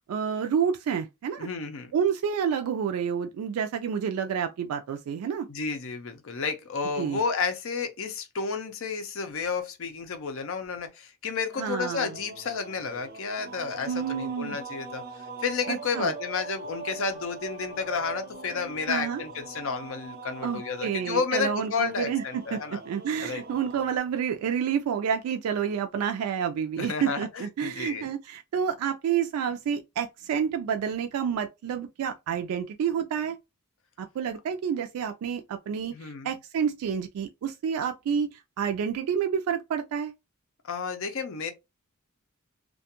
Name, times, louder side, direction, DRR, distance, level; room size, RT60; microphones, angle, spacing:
voice 1, 0.1-1.5 1.9-5.5 7.0-7.2 11.6-12.1 13.9-14.6 15.7-16.1 18.9-19.2 20.4-33.4 34.0-40.1, right 7 dB, 90° right, 0.3 m, -29 dB
voice 2, 1.4-1.9 5.5-22.8 23.2-23.4 26.8-28.1 35.9-36.3 40.6-41.5, left 5 dB, 65° left, 0.6 m, -31 dB
sound 1, 11.4-24.0, right 4 dB, 45° right, 0.7 m, -42 dB
2.5 x 2.2 x 2.8 m
head